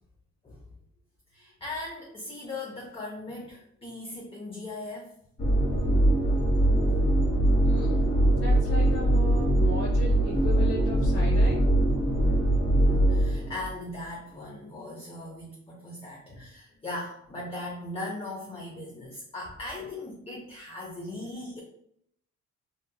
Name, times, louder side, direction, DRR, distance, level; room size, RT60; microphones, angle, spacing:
voice 1, 1.3-5.1 8.2-8.4 10.3-10.4 12.1-12.3 12.8-21.6, left 2 dB, 20° left, -3 dB, 0.6 m, -39 dB
sound 1, 5.4-13.7, right 1 dB, 40° left, 1.4 m, -22 dB
voice 2, 7.6-8.0 8.3-11.6, equal, 80° left, -8 dB, 1.1 m, -36 dB
2.8 x 2.4 x 2.2 m, 0.70 s
cardioid pair, 90°, 30 cm